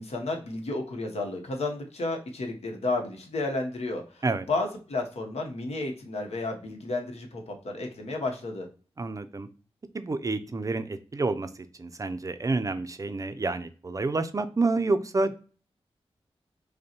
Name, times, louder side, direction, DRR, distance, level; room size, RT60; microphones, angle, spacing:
voice 1, 0.0-8.7, left 2 dB, 75° left, 0.9 m, -32 dB
voice 2, 9.0-9.5 9.9-15.4, right 3 dB, 30° right, 0.4 m, -29 dB
5.2 x 2.1 x 2.9 m
wide cardioid pair, 105°, 11 cm